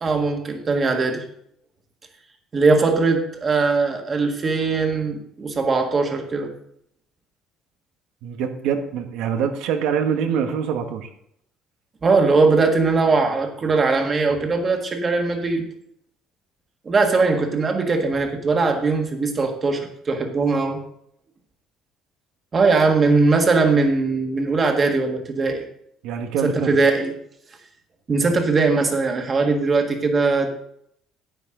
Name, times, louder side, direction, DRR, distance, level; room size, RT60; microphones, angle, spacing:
voice 1, 0.0-1.2 2.5-6.5 12.0-15.7 16.8-20.8 22.5-25.6 26.4-27.1 28.1-30.5, right 3 dB, 25° right, 3 dB, 1.6 m, -20 dB
voice 2, 8.2-11.1 26.0-26.8, right 7 dB, 80° right, 6 dB, 1.3 m, -24 dB
10.5 x 9.3 x 3.8 m, 0.71 s
cardioid pair, 155°, 0 cm